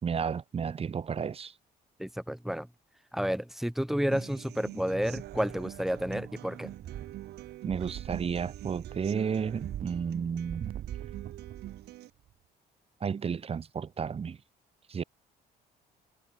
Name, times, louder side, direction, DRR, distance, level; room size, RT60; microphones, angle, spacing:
voice 1, 0.0-1.5 7.6-10.7 13.0-14.4 14.9-15.0, right 6 dB, 35° right, 2.9 m, -32 dB
voice 2, 2.0-2.7 3.1-6.7, equal, ahead, 2.9 m, -31 dB
Human voice / Acoustic guitar, 4.1-12.1, right 15 dB, 75° right, 4.4 m, -46 dB
sound 1, 4.9-6.3 6.6-11.9 12.3-12.4, right 11 dB, 60° right, 6.8 m, -43 dB
cardioid pair, 110°, 17 cm